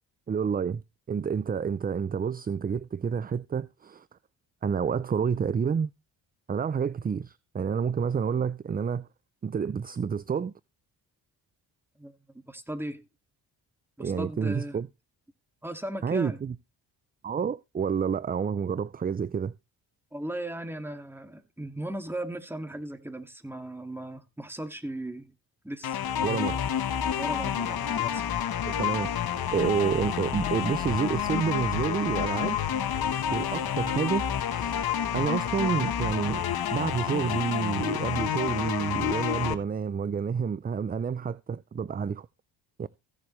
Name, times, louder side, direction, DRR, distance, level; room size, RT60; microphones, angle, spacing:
voice 1, 0.3-0.8 1.1-4.1 4.6-5.9 6.5-9.1 9.4-10.5 14.0-14.9 16.0-16.5 17.2-19.5 26.2-26.6 28.6-32.6 33.3-34.8 35.1-36.4 36.7-42.3 42.8-42.9, right 6 dB, 20° right, 0.4 m, -29 dB
voice 2, 12.0-13.1 14.0-14.8 15.6-16.4 20.1-25.3 25.6-26.1 27.2-28.3, right 1 dB, 5° right, 2.0 m, -37 dB
sound 1, 25.8-39.5, left 9 dB, 55° left, 1.3 m, -29 dB
16.0 x 7.1 x 3.2 m
supercardioid pair, 70°, 44 cm